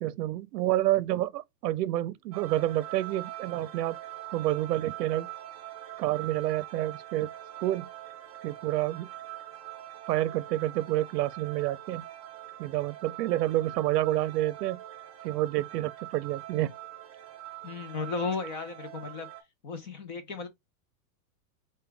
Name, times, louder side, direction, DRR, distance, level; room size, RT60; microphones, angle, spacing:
voice 1, 0.0-4.0 4.3-5.3 6.0-7.3 7.6-7.9 8.4-9.1 10.1-12.0 12.6-14.8 15.2-16.7, right 15 dB, 90° right, 0.6 m, -29 dB
sound 1, 2.3-19.4, right 14 dB, 25° right, 0.4 m, -44 dB
voice 2, 17.6-19.3 19.6-20.5, left 4 dB, 30° left, 0.5 m, -34 dB
4.7 x 2.2 x 3.3 m
supercardioid pair, 170°, 47 cm